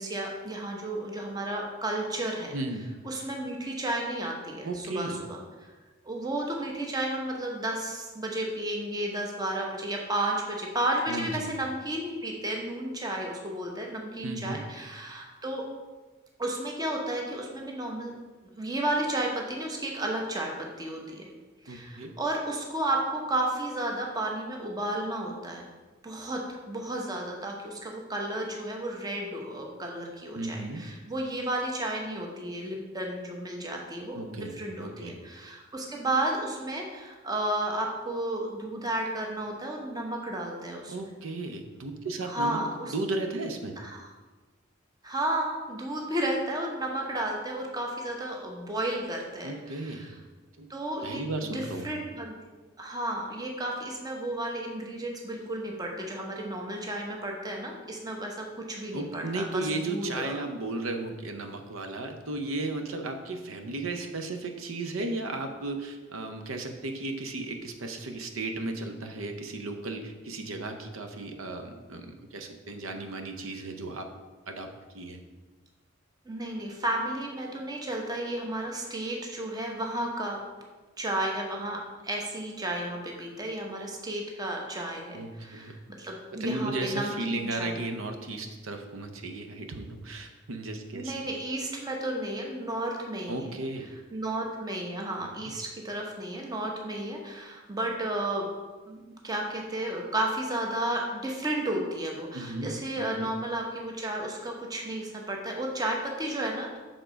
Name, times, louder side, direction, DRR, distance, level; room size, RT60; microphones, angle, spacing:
voice 1, 0.0-2.5 3.0-5.7 6.0-15.6 16.4-18.1 18.6-21.3 21.6-25.7 26.0-41.1 42.2-42.9 43.8-44.1 45.0-50.1 50.7-52.3 52.8-59.6 59.9-60.4 76.3-80.4 81.0-87.8 90.9-93.5 94.1-98.5 98.9-99.0 99.2-106.8, right 1 dB, 20° right, 0 dB, 0.8 m, -33 dB
voice 2, 2.5-2.9 4.6-5.2 11.1-11.6 14.2-14.6 21.7-22.1 30.3-30.9 34.1-34.5 34.8-35.2 40.9-43.8 49.4-50.1 50.6-50.7 51.0-52.0 58.9-74.1 74.5-75.2 85.1-85.8 86.3-91.3 93.3-93.9 95.4-95.5 102.3-103.3, right 2 dB, 80° right, 5 dB, 0.6 m, -35 dB
6.9 x 3.8 x 5.0 m, 1.3 s
head